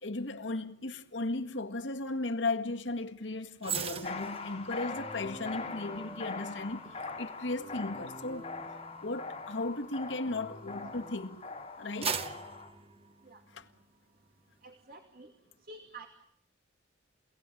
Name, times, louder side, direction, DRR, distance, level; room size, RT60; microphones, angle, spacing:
voice 1, 0.0-8.5 9.0-11.4 11.8-12.3 13.5-13.7, left 2 dB, 75° left, 1.8 m, -36 dB
sound 1, 3.6-11.0 11.5-13.8 14.2-14.4, right 6 dB, 30° right, 1.2 m, -42 dB
sound 2, 3.7-11.1, left 1 dB, 5° left, 2.2 m, -51 dB
sound 3, 4.0-12.7, left 4 dB, 35° left, 3.1 m, -42 dB
voice 2, 14.6-15.3 15.6-16.1, right 2 dB, 55° right, 2.5 m, -49 dB
29.5 x 18.0 x 9.1 m
head